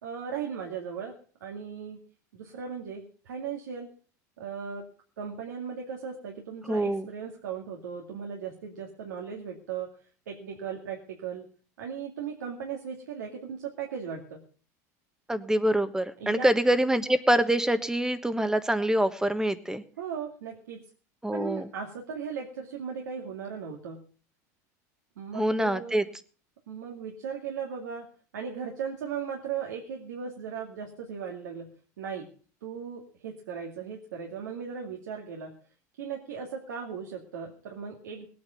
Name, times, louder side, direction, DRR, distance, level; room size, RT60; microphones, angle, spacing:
voice 1, 0.0-1.1 1.4-2.0 2.3-3.9 4.4-4.8 5.2-9.9 10.3-11.4 11.8-14.4 16.2-16.5 20.0-20.8 21.3-24.0 25.2-26.0 26.7-28.1 28.3-32.3 32.6-35.5 36.0-38.3, right 7 dB, 85° right, 0 dB, 2.3 m, -37 dB
voice 2, 6.6-7.1 15.3-19.8 21.2-21.7 25.3-26.0, right 1 dB, 5° right, 11 dB, 1.3 m, -25 dB
18.0 x 9.3 x 5.7 m, 0.41 s
hypercardioid pair, 95°, 9 cm